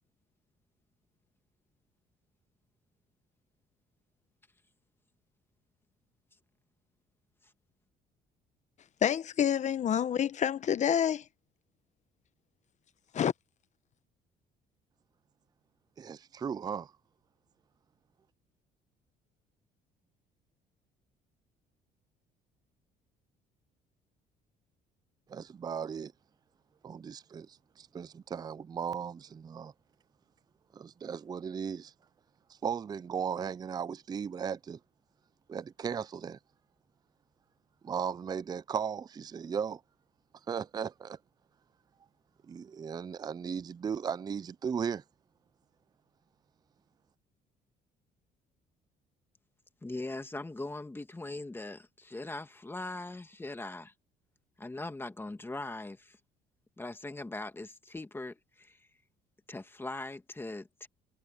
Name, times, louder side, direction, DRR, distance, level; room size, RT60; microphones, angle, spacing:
voice 1, 9.0-11.2 13.1-13.3, left 9 dB, 45° left, 1.0 m, -28 dB
voice 2, 16.0-16.9 25.3-26.1 26.8-27.5 27.8-29.7 30.7-31.9 32.6-34.8 35.5-36.4 37.8-39.8 40.5-41.2 42.5-45.0, right 7 dB, 25° right, 0.4 m, -36 dB
voice 3, 49.8-53.9 54.6-56.2 56.8-58.9 59.5-60.9, left 2 dB, 15° left, 2.0 m, -40 dB
cardioid pair, 110°, 17 cm